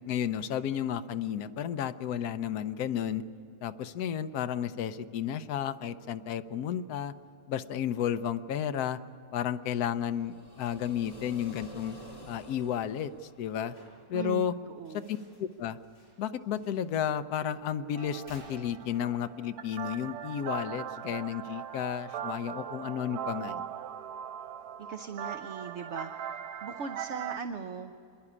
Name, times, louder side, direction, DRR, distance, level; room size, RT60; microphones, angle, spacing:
voice 1, 0.1-3.2 3.6-7.1 7.5-9.0 9.3-12.0 12.3-13.1 13.4-13.7 14.1-14.5 15.1-15.8 16.2-23.6, left 9 dB, 75° left, 11 dB, 1.2 m, -32 dB
sound 1, 10.1-14.1, equal, 15° left, 1.7 m, -50 dB
sound 2, 12.7-19.3, left 1 dB, 40° left, 7.5 m, -60 dB
voice 2, 14.1-15.1 24.9-27.9, right 6 dB, 55° right, 8 dB, 0.9 m, -39 dB
sound 3, 17.9-27.4, right 9 dB, 80° right, 1.2 m, -40 dB
26.5 x 11.0 x 9.9 m, 2.8 s
omnidirectional pair, 1.7 m